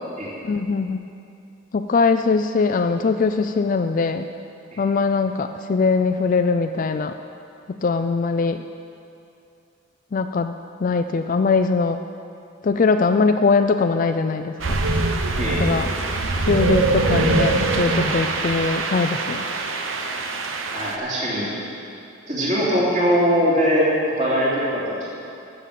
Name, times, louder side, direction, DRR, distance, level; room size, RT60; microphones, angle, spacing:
voice 1, 0.4-1.1 1.7-4.3 4.8-7.1 7.7-8.6 10.1-10.5 10.8-12.0 12.6-14.8 15.6-15.9 16.5-19.5, left 4 dB, 40° left, 8 dB, 0.4 m, -21 dB
sound 1, 14.6-21.0, right 2 dB, 75° right, 1.0 m, -23 dB
voice 2, 15.4-15.9 20.0-20.1 20.7-21.5 22.3-23.9 24.2-25.1, equal, 35° right, -8 dB, 3.1 m, -21 dB
14.0 x 6.7 x 7.5 m, 2.6 s
head